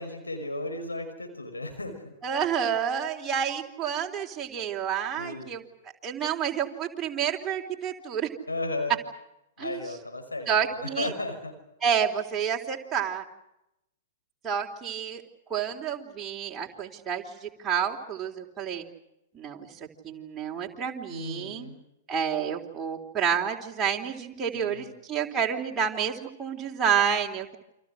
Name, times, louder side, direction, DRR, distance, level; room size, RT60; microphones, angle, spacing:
voice 1, 0.0-2.1 5.2-5.5 8.5-9.0 9.6-11.5 21.1-21.8 24.5-24.9, left 2 dB, 85° left, 4 dB, 5.5 m, -35 dB
voice 2, 2.2-5.6 6.0-8.3 9.6-9.8 10.5-11.1 11.8-13.2 14.4-15.2 15.5-18.8 19.3-19.7 20.0-21.7 22.1-27.6, right 8 dB, 20° right, -1 dB, 3.7 m, -29 dB
29.5 x 26.0 x 6.5 m, 0.85 s
figure-of-eight pair, 110°, 0 cm